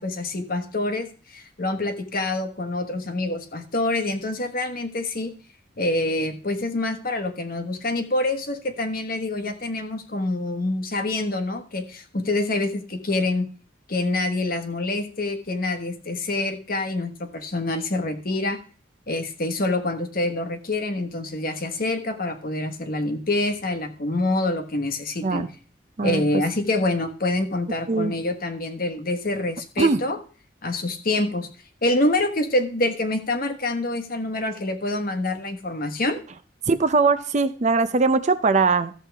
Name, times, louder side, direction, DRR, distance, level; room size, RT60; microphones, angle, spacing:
voice 1, 0.0-5.3 5.8-13.5 13.9-18.6 19.1-25.5 26.0-30.2 30.6-31.5 31.8-36.2, left 2 dB, 50° left, 7 dB, 1.2 m, -26 dB
voice 2, 36.7-38.9, right 4 dB, 40° right, 11 dB, 0.5 m, -21 dB
14.0 x 7.4 x 3.4 m, 0.40 s
head